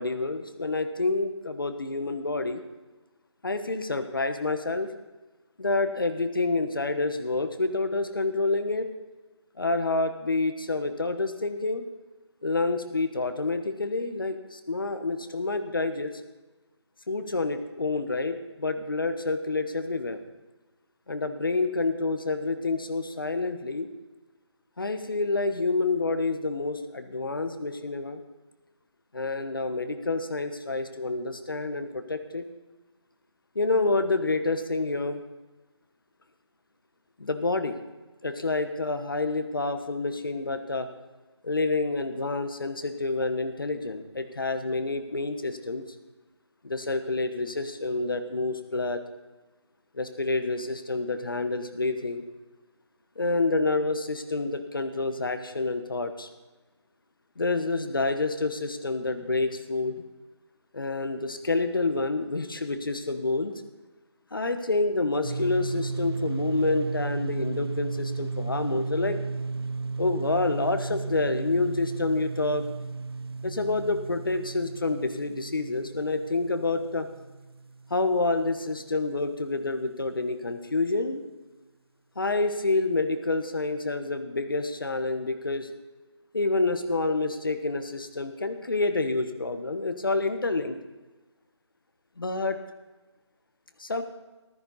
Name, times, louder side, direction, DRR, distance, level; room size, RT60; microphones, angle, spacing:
voice 1, 0.0-2.6 3.4-4.9 5.6-8.9 9.6-11.9 12.4-16.1 17.1-20.2 21.1-23.9 24.8-28.2 29.1-32.4 33.5-35.2 37.2-37.8 38.2-40.9 41.4-45.8 46.6-49.0 49.9-52.2 53.2-56.3 57.4-60.0 60.7-63.5 64.3-69.2 70.0-72.6 73.4-77.1 77.9-81.2 82.2-85.7 86.3-90.8 92.2-92.6 93.8-94.0, left 3 dB, 50° left, 8 dB, 1.2 m, -28 dB
sound 1, 65.2-78.7, right 4 dB, 55° right, 0.4 m, -34 dB
14.0 x 13.5 x 4.1 m, 1.2 s
figure-of-eight pair, 180°, 15 cm